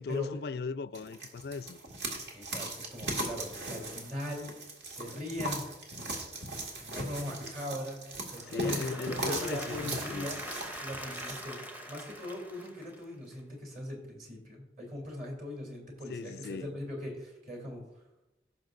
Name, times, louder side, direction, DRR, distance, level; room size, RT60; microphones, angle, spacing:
voice 1, 0.0-1.8 8.5-10.3 16.1-16.8, left 4 dB, 60° left, 0.3 m, -38 dB
sound 1, 0.9-11.4, right 2 dB, 75° right, 2.0 m, -38 dB
voice 2, 2.3-4.5 4.9-5.7 6.0-6.2 6.8-8.0 8.3-10.4 10.8-11.6 11.8-17.8, left 1 dB, 45° right, 3.0 m, -40 dB
Applause / Crowd, 8.3-13.3, equal, 10° right, 0.7 m, -43 dB
17.0 x 5.9 x 2.6 m
head